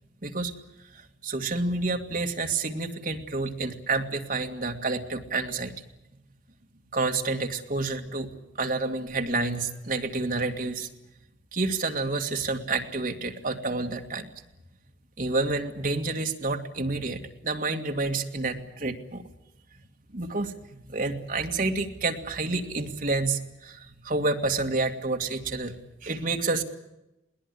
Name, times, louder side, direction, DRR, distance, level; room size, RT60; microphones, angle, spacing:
voice 1, 0.2-0.5 0.9-5.8 6.9-8.3 8.6-10.9 11.5-14.3 15.2-19.2 20.1-20.5 20.8-25.7 26.0-26.6, right 3 dB, 50° right, 4 dB, 2.1 m, -29 dB
21.5 x 19.0 x 9.8 m, 0.93 s
head